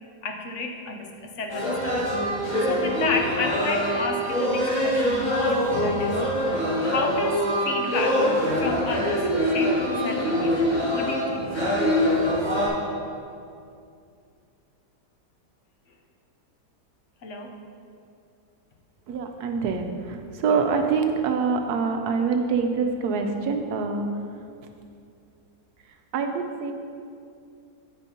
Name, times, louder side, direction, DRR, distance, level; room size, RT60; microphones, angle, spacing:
voice 1, 0.2-6.2 6.5-10.6 10.9-12.0 17.2-17.6 20.5-20.6, left 3 dB, 60° left, 3 dB, 0.9 m, -32 dB
sound 1, 1.5-12.7, equal, 25° left, 1.9 m, -24 dB
Guitar, 5.7-8.5, left 1 dB, 85° left, 2.7 m, -41 dB
voice 2, 19.1-24.0 26.1-26.7, right 5 dB, 75° right, 5 dB, 1.2 m, -25 dB
12.5 x 5.3 x 2.8 m, 2.4 s
omnidirectional pair, 1.8 m